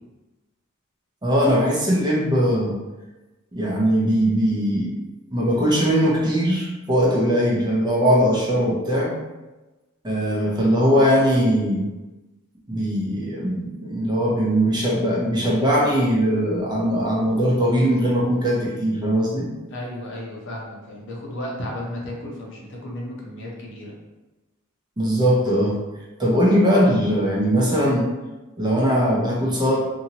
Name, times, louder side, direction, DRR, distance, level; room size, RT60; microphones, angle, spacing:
voice 1, 1.2-2.8 3.5-5.0 5.3-9.2 10.0-11.8 12.7-19.5 25.0-25.8 26.2-28.1 28.6-29.8, equal, 20° right, -4 dB, 0.6 m, -20 dB
voice 2, 19.7-23.9, left 1 dB, 60° left, -2 dB, 0.7 m, -34 dB
2.7 x 2.6 x 2.8 m, 1.1 s
head